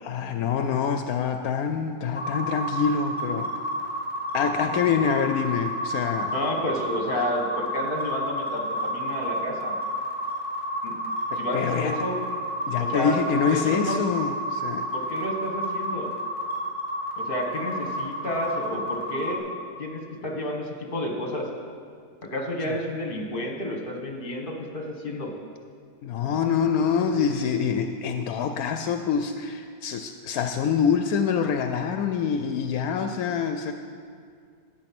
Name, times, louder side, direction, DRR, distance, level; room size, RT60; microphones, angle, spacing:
voice 1, 0.0-3.5 4.3-6.3 11.3-11.9 12.7-14.9 22.7-22.8 26.0-33.7, left 7 dB, 80° left, 7 dB, 1.0 m, -26 dB
sound 1, 2.1-19.4, equal, 5° left, 2.3 m, -31 dB
voice 2, 6.3-9.7 10.8-11.0 11.4-12.2 12.8-13.2 13.5-14.0 14.9-16.1 17.2-19.5 19.8-21.5 22.2-25.3, left 1 dB, 40° left, 2 dB, 1.6 m, -30 dB
12.0 x 8.5 x 6.0 m, 2.2 s
omnidirectional pair, 1.5 m